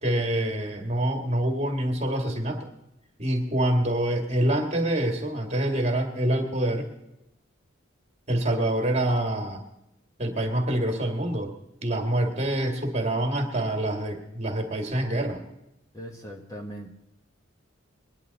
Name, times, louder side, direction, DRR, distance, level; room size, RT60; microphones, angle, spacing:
voice 1, 0.0-2.7 3.2-6.9 8.3-9.6 10.2-11.5 11.8-15.4, right 1 dB, 35° right, 3 dB, 2.0 m, -26 dB
voice 2, 15.9-16.9, equal, 15° left, 2 dB, 1.1 m, -39 dB
21.5 x 10.5 x 4.1 m, 0.87 s
head